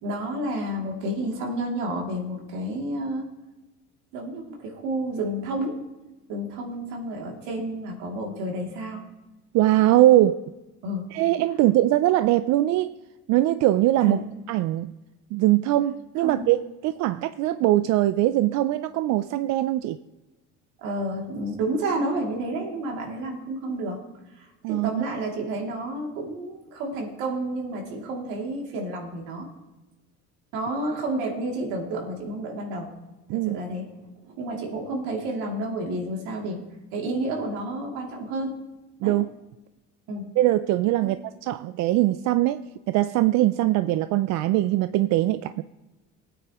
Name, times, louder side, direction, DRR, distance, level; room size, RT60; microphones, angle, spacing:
voice 1, 0.0-3.3 4.1-5.8 6.3-9.0 10.8-11.1 14.0-14.2 16.2-16.5 20.8-24.0 24.3-29.5 30.5-32.9 33.3-33.9 34.2-36.6 36.9-38.6 39.0-39.1 40.1-40.3 41.0-41.1, right 1 dB, 90° right, -1 dB, 2.7 m, -30 dB
voice 2, 9.5-10.4 11.1-12.9 13.3-14.2 14.5-14.9 15.3-20.0 24.6-25.0 33.3-33.6 39.0-39.3 40.4-45.6, right 15 dB, 70° right, 12 dB, 0.5 m, -21 dB
20.5 x 9.3 x 3.0 m, 1.1 s
cardioid pair, 125°, 29 cm